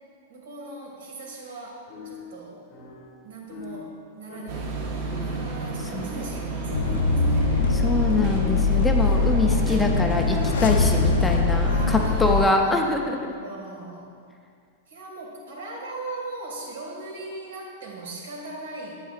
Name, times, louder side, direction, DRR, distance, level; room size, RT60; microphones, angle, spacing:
voice 1, 0.3-2.6 3.2-7.7 11.6-14.2 14.9-19.0, right 2 dB, 80° right, -1 dB, 1.8 m, -39 dB
sound 1, 1.9-8.8, left 1 dB, 25° left, 0.7 m, -41 dB
sound 2, 4.5-12.4, right 3 dB, 35° right, 0.8 m, -31 dB
voice 2, 5.8-6.3 7.7-13.3, left 2 dB, 5° left, 2 dB, 0.3 m, -24 dB
sound 3, 6.7-12.4, left 4 dB, 85° left, 0.4 m, -22 dB
9.2 x 8.0 x 2.4 m, 2.3 s
supercardioid pair, 175°, 0 cm